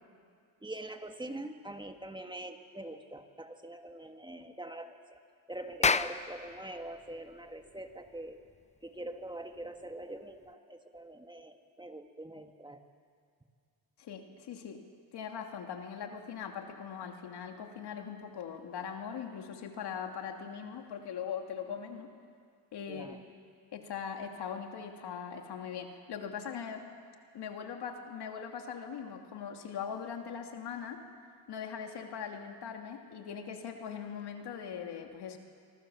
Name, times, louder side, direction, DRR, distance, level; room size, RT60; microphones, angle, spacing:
voice 1, 0.6-5.2 5.5-8.4 8.8-12.9 22.9-23.2, right 1 dB, 10° right, 5 dB, 1.7 m, -44 dB
Clapping, 5.6-10.5, left 4 dB, 15° left, 0.6 m, -34 dB
voice 2, 14.0-14.8 15.1-22.1 22.7-23.2 23.7-26.9 27.3-31.0 31.5-35.4, left 7 dB, 70° left, 4 dB, 2.8 m, -41 dB
25.5 x 25.0 x 7.2 m, 2.1 s
cardioid pair, 100°, 41 cm